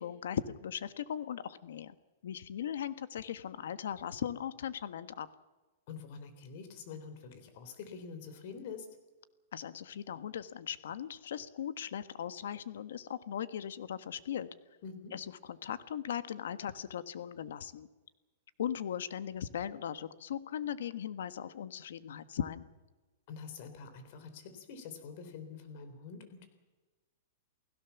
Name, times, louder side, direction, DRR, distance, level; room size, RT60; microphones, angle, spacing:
voice 1, 0.0-1.9 2.2-5.3 9.5-14.5 15.1-15.2 15.6-17.9 18.6-22.7, left 9 dB, 75° left, 13 dB, 1.4 m, -38 dB
voice 2, 5.9-8.9 14.8-15.1 23.3-26.5, left 5 dB, 40° left, 9 dB, 3.8 m, -46 dB
29.0 x 16.5 x 7.2 m, 1.2 s
supercardioid pair, 175°, 0 cm